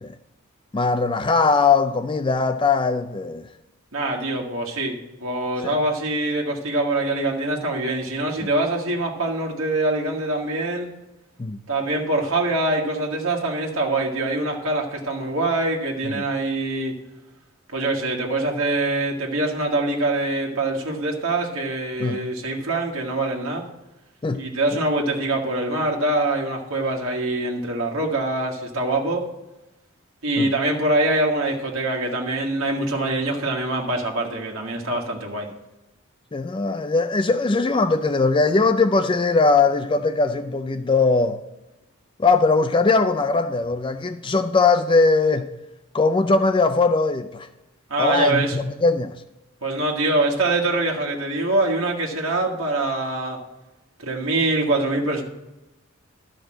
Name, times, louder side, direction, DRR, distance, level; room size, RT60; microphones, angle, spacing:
voice 1, 0.7-3.4 5.6-5.7 11.4-11.6 16.1-16.2 22.0-22.2 24.2-24.4 30.4-30.5 36.3-41.4 42.2-45.5 45.9-47.5 48.0-49.2, left 4 dB, 20° left, 0.3 m, -20 dB
voice 2, 3.9-10.9 11.7-16.9 17.7-23.7 24.3-29.3 30.2-35.5 47.9-48.6 49.6-53.4 54.0-55.2, right 2 dB, 60° right, 1.6 m, -24 dB
12.0 x 5.0 x 7.5 m
head